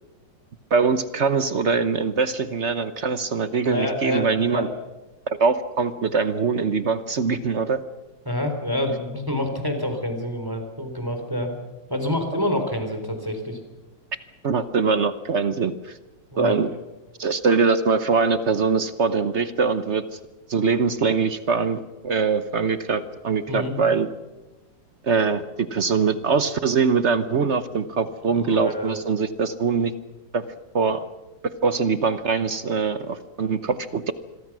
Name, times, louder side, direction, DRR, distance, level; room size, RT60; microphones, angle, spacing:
voice 1, 0.7-4.7 5.4-7.8 14.4-16.0 16.4-16.7 17.2-20.0 20.5-24.1 25.0-25.4 25.7-29.9 30.3-30.4 30.7-31.0 31.6-34.1, right 5 dB, 50° right, 12 dB, 0.9 m, -22 dB
voice 2, 3.6-4.7 8.3-11.5 11.9-13.6 16.3-16.6 23.5-23.7 28.3-29.0, left 1 dB, 10° right, 5 dB, 3.8 m, -27 dB
27.0 x 22.5 x 6.2 m, 1.1 s
omnidirectional pair, 2.1 m